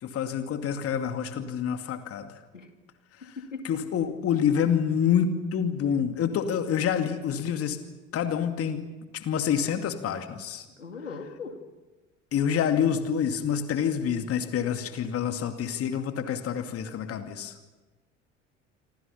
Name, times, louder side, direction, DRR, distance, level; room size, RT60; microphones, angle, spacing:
voice 1, 0.0-2.3 3.2-3.3 3.6-7.8 8.1-8.9 9.1-10.6 12.3-17.5, left 8 dB, 40° left, 7 dB, 2.5 m, -27 dB
voice 2, 3.4-3.8 10.8-11.6, left 4 dB, 85° left, 6 dB, 2.5 m, -39 dB
28.0 x 26.0 x 5.8 m, 1.1 s
figure-of-eight pair, 65°, 37 cm